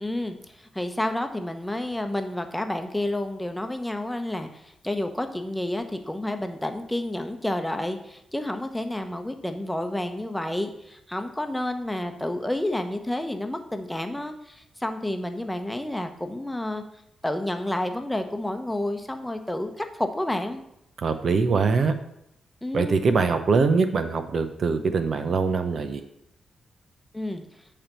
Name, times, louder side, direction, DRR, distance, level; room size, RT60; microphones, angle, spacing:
voice 1, 0.0-16.8 17.2-20.6 22.6-23.0 27.1-27.4, left 1 dB, 10° left, 6 dB, 0.9 m, -30 dB
voice 2, 21.0-21.9 22.7-26.0, right 4 dB, 60° right, 8 dB, 0.6 m, -23 dB
8.7 x 3.4 x 5.5 m, 0.79 s
supercardioid pair, 55°, 0 cm